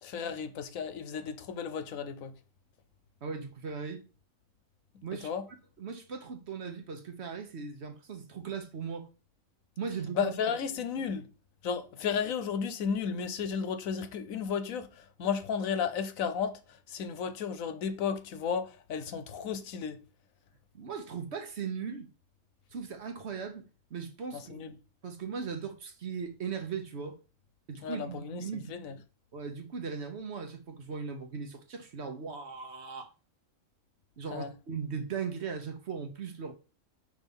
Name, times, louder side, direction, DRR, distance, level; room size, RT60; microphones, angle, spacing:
voice 1, 0.0-2.3 5.2-5.4 10.1-11.3 11.6-20.0 24.3-24.7 27.8-29.0 34.3-34.5, left 7 dB, 85° left, 1.2 m, -34 dB
voice 2, 3.2-4.0 5.0-5.3 5.8-9.1 9.8-10.3 20.7-22.1 22.7-23.6 23.9-24.6 25.0-27.2 27.7-28.7 29.3-33.1 34.2-36.5, right 6 dB, 55° right, 1.2 m, -38 dB
5.4 x 3.5 x 5.3 m
omnidirectional pair, 1.4 m